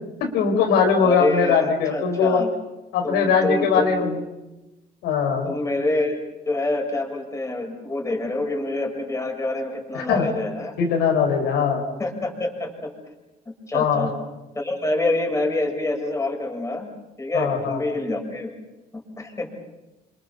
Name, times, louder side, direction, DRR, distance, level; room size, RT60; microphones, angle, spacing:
voice 1, 0.2-2.4 2.9-4.2 5.0-5.5 9.9-10.3 10.8-11.8 13.7-14.1 17.3-17.8, left 6 dB, 85° left, 3 dB, 5.1 m, -21 dB
voice 2, 1.0-2.5 3.0-4.0 5.4-6.2 6.5-10.8 12.0-12.9 13.7-14.1 14.5-16.9 17.2-18.5 18.9-19.5, left 2 dB, 15° left, 1 dB, 6.5 m, -26 dB
28.5 x 25.5 x 7.1 m, 1.0 s
cardioid pair, 110°, 17 cm